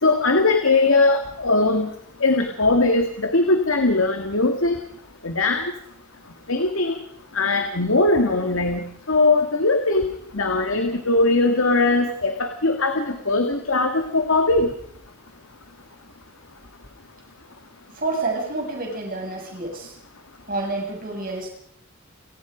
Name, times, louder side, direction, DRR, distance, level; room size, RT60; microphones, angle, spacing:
voice 1, 0.0-1.9 2.2-4.8 5.2-5.7 6.5-7.0 7.3-10.1 10.3-14.7, left 2 dB, 65° left, 6 dB, 2.1 m, -20 dB
voice 2, 17.9-19.9 20.5-21.5, right 3 dB, 40° right, 1 dB, 7.0 m, -28 dB
30.0 x 18.5 x 5.1 m, 0.67 s
head